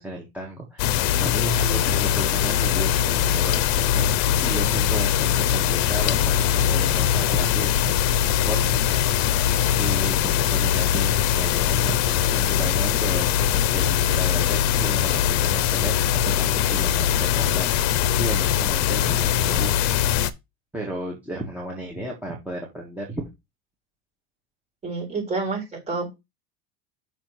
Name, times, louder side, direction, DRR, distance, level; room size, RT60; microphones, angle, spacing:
voice 1, 0.0-4.1 4.4-8.9 9.2-9.5 9.8-16.0 16.2-20.0 20.7-23.2, right 1 dB, 5° right, -3 dB, 1.6 m, -34 dB
sound 1, 0.8-20.3, left 10 dB, 60° left, 0.7 m, -21 dB
voice 2, 24.8-26.2, right 3 dB, 20° right, 1 dB, 4.1 m, -29 dB
6.3 x 3.8 x 6.2 m, 0.22 s
cardioid pair, 140°, 31 cm